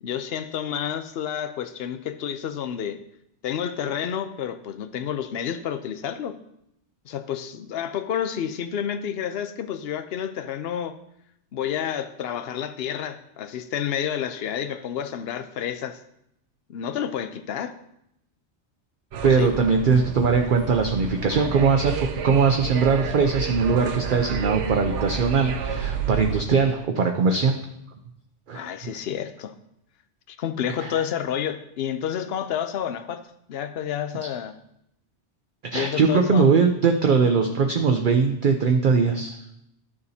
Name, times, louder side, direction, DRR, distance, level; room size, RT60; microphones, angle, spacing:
voice 1, 0.0-3.0 3.4-6.4 7.0-11.0 11.5-16.0 16.7-17.7 19.2-19.5 28.5-29.6 30.3-34.6 35.7-36.6, left 9 dB, 65° left, 9 dB, 0.8 m, -30 dB
sound 1, 19.1-26.4, right 6 dB, 80° right, 1.0 m, -30 dB
voice 2, 19.2-27.6 28.5-28.7 30.8-30.9 35.6-39.4, right 5 dB, 55° right, 4 dB, 0.7 m, -21 dB
12.0 x 6.8 x 2.8 m, 0.78 s
omnidirectional pair, 1.2 m